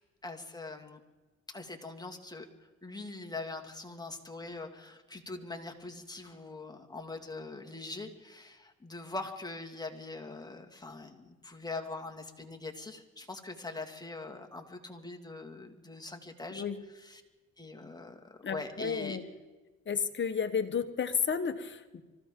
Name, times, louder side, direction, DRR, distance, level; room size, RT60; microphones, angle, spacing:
voice 1, 0.2-1.0 1.5-2.5 2.8-16.6 16.9-17.2 17.6-19.2, left 3 dB, 15° left, 3 dB, 2.1 m, -42 dB
voice 2, 18.4-19.2 19.9-22.0, left 6 dB, 40° left, 9 dB, 1.3 m, -32 dB
25.0 x 15.0 x 3.8 m, 1.2 s
cardioid pair, 90°, 30 cm